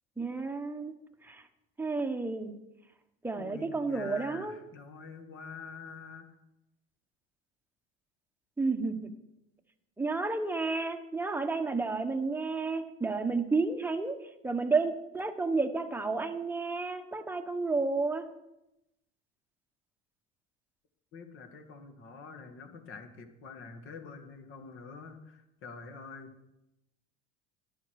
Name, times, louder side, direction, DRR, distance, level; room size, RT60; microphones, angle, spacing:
voice 1, 0.2-0.9 1.2-1.4 1.8-2.5 3.2-4.6 8.6-9.1 10.0-14.1 14.4-18.3, right 3 dB, 5° right, 6 dB, 1.1 m, -31 dB
voice 2, 3.3-6.3 21.1-26.5, left 4 dB, 45° left, 7 dB, 2.0 m, -46 dB
13.5 x 11.0 x 4.8 m, 0.91 s
supercardioid pair, 120°, 29 cm